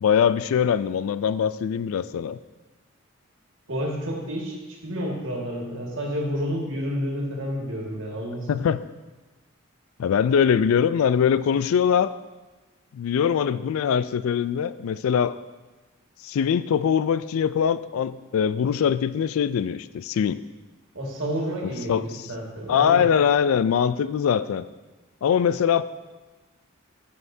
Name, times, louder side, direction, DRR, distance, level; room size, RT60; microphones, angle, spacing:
voice 1, 0.0-2.4 8.5-8.8 10.0-12.1 12.9-15.4 16.2-20.4 21.9-22.2 22.7-24.6 25.2-25.8, left 7 dB, 80° left, 15 dB, 0.3 m, -22 dB
voice 2, 3.7-4.6 4.8-8.7 20.9-23.1, equal, 65° right, -1 dB, 1.8 m, -30 dB
15.0 x 5.6 x 2.7 m, 1.2 s
head